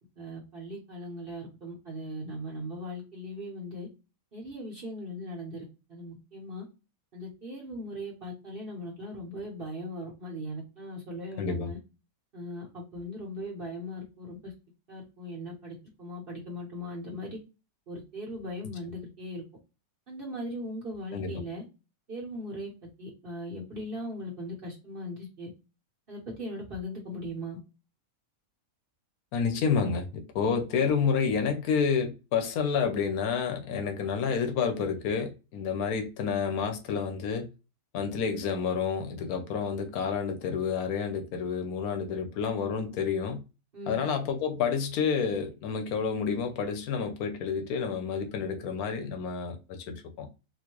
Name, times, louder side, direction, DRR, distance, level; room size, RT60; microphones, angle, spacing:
voice 1, 0.2-3.9 4.3-6.7 7.1-11.8 12.3-14.5 14.9-17.4 17.9-19.4 20.1-21.6 22.1-25.5 26.1-27.6 43.7-44.0, equal, 40° right, 1.2 m, -39 dB
voice 2, 11.4-11.7 21.1-21.4 29.3-37.5 37.9-43.4 43.9-50.3, left 6 dB, 80° left, 1.2 m, -29 dB
4.3 x 2.2 x 3.0 m
omnidirectional pair, 1.5 m